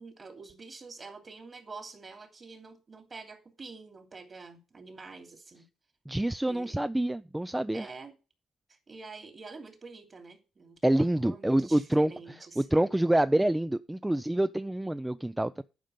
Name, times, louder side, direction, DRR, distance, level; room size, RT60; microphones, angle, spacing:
voice 1, 0.0-5.7 6.5-6.8 7.7-8.1 8.9-12.8, right 4 dB, 35° right, 3.0 m, -47 dB
voice 2, 6.1-7.9 10.8-12.1 12.6-15.6, right 1 dB, 10° right, 0.4 m, -27 dB
10.5 x 5.3 x 7.8 m
cardioid pair, 90°, 0 cm